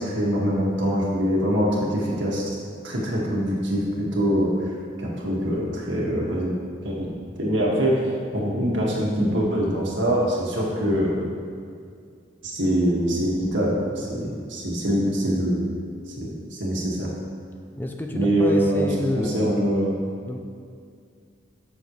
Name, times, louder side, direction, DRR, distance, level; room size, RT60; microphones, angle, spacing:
voice 1, 0.0-2.4 2.8-4.5 5.0-6.6 6.8-7.1 7.4-8.0 8.3-11.2 12.4-15.7 16.2-17.1 18.1-18.9 19.1-19.9, equal, 75° right, -4 dB, 1.9 m, -23 dB
voice 2, 17.8-19.6 20.3-20.4, left 1 dB, 10° left, 3 dB, 0.4 m, -29 dB
13.5 x 6.4 x 3.2 m, 2.2 s
head